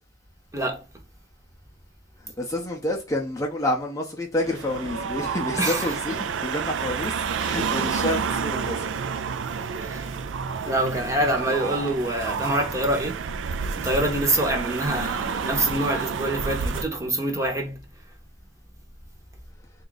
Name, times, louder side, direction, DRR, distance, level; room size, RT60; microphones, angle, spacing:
voice 1, 0.5-0.8 5.6-6.0 9.8-10.1 10.6-13.2 13.8-17.8, right 1 dB, 15° right, 0.8 m, -25 dB
voice 2, 2.2-8.9, left 1 dB, 20° left, 0.5 m, -29 dB
sound 1, 4.4-16.8, right 6 dB, 85° right, 0.4 m, -29 dB
3.8 x 2.4 x 3.8 m
head